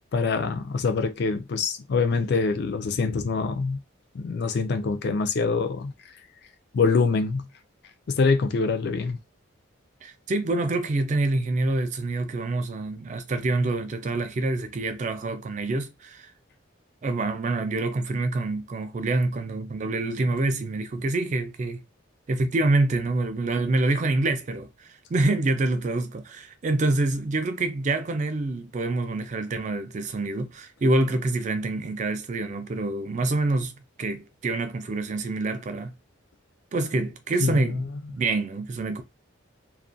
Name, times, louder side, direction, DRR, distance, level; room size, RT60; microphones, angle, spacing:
voice 1, 0.1-3.8 4.1-5.9 6.7-7.5 8.1-9.2 37.4-37.8, left 4 dB, 50° left, 0.3 m, -24 dB
voice 2, 10.0-16.3 17.0-21.8 22.3-35.9 36.7-37.8 38.1-39.0, right 2 dB, 35° right, 0.3 m, -26 dB
2.4 x 2.1 x 2.5 m
head